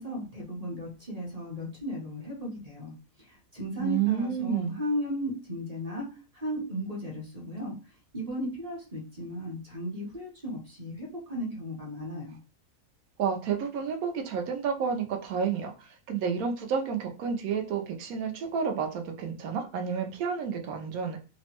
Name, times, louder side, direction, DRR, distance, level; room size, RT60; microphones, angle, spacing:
voice 1, 0.0-6.1 6.3-7.7 8.1-12.4, equal, 35° right, -2 dB, 0.7 m, -35 dB
voice 2, 3.8-4.8 13.2-21.2, right 7 dB, 80° right, 4 dB, 1.1 m, -30 dB
2.9 x 2.1 x 2.8 m, 0.32 s
omnidirectional pair, 1.5 m